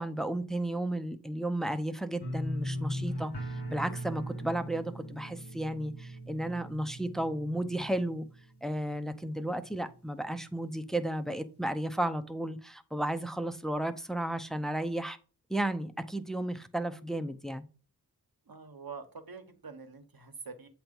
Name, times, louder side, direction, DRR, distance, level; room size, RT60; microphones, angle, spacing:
voice 1, 0.0-3.3 3.7-8.3 8.6-15.2 15.5-17.6, right 1 dB, ahead, 0.6 m, -33 dB
sound 1, 2.2-9.1 9.4-9.9 10.3-10.4, equal, 80° left, 1.2 m, -39 dB
voice 2, 18.5-20.7, right 5 dB, 60° right, 1.1 m, -45 dB
7.9 x 3.0 x 5.3 m
wide cardioid pair, 45°, 39 cm